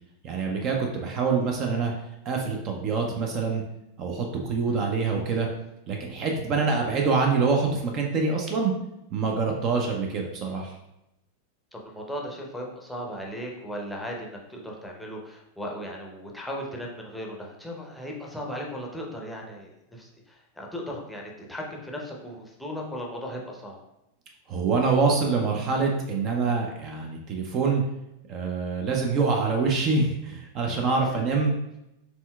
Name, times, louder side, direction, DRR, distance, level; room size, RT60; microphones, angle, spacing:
voice 1, 0.2-1.9 2.3-3.6 4.0-5.5 5.9-8.7 9.1-10.7 24.5-27.8 28.3-31.6, right 4 dB, 35° right, 1 dB, 0.5 m, -25 dB
voice 2, 11.7-23.8, equal, 5° left, -1 dB, 0.7 m, -37 dB
4.3 x 3.4 x 2.3 m, 0.88 s
figure-of-eight pair, 90°, 0 cm